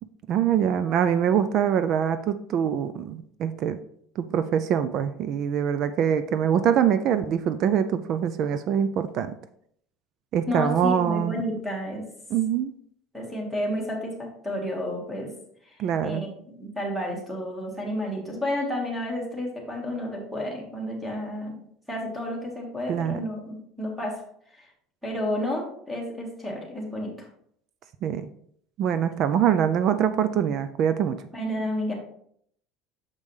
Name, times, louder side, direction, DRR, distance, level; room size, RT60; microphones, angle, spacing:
voice 1, 0.3-3.8 4.2-9.3 10.3-11.4 12.3-12.7 15.8-16.2 22.9-23.2 28.0-28.3 28.8-31.2, right 8 dB, 40° right, 12 dB, 0.3 m, -24 dB
voice 2, 10.5-12.0 13.1-15.3 15.7-15.8 16.0-21.6 21.9-24.1 24.6-24.7 25.0-27.1 31.3-31.9, left 1 dB, 5° right, -1 dB, 1.6 m, -31 dB
6.6 x 5.3 x 3.2 m, 0.66 s
cardioid pair, 160°, 0 cm